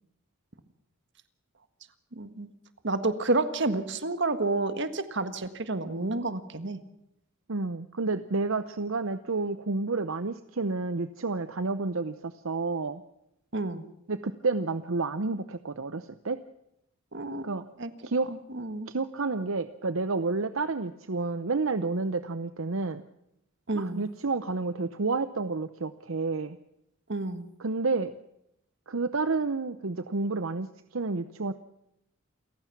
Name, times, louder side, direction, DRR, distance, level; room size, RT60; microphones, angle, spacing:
voice 1, 2.1-2.5 2.8-6.8 13.5-13.8 17.1-17.5 17.8-17.9 18.3-18.9 23.7-24.0 27.1-27.5, right 2 dB, 55° right, 11 dB, 1.7 m, -30 dB
voice 2, 7.5-13.0 14.1-16.4 17.4-17.7 18.0-18.3 18.9-23.0 23.8-26.6 27.6-28.1 28.9-30.7 30.9-31.5, right 3 dB, 75° right, 11 dB, 0.8 m, -30 dB
28.5 x 15.0 x 6.0 m, 0.80 s
head